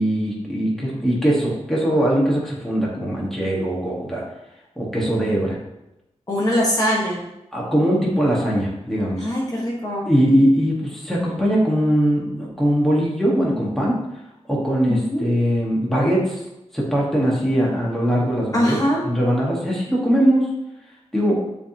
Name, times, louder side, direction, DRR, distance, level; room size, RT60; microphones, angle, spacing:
voice 1, 0.0-4.2 4.8-5.6 7.5-9.3 10.1-14.0 14.5-16.4 16.7-18.8 19.0-20.5 21.1-21.3, equal, ahead, -5 dB, 1.4 m, -20 dB
voice 2, 6.3-7.2 9.2-10.1 14.9-15.2 18.5-19.0, equal, 30° left, -3 dB, 1.3 m, -22 dB
10.0 x 3.5 x 2.8 m, 0.91 s
wide cardioid pair, 135°, 12 cm